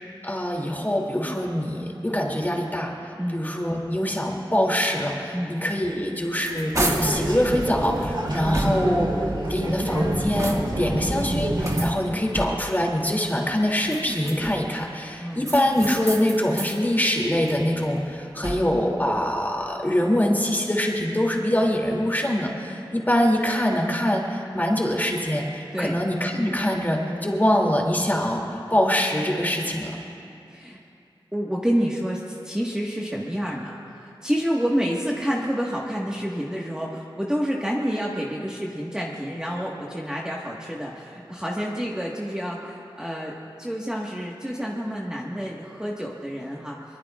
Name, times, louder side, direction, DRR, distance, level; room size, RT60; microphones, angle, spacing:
voice 1, 0.2-30.0, equal, 20° left, -1 dB, 2.7 m, -24 dB
sound 1, 5.9-7.3 7.8-9.1 9.7-10.9 11.6-12.8 13.7-14.8 15.4-16.8 17.2-18.9, right 1 dB, 35° right, 1.7 m, -32 dB
sound 2, 6.7-11.9, right 1 dB, 60° right, 3.5 m, -27 dB
voice 2, 8.3-8.7 15.2-15.5 25.7-25.9 30.5-30.8 31.3-46.8, equal, 10° right, -4 dB, 1.5 m, -28 dB
24.5 x 23.0 x 2.4 m, 2.6 s
wide cardioid pair, 70°, 9 cm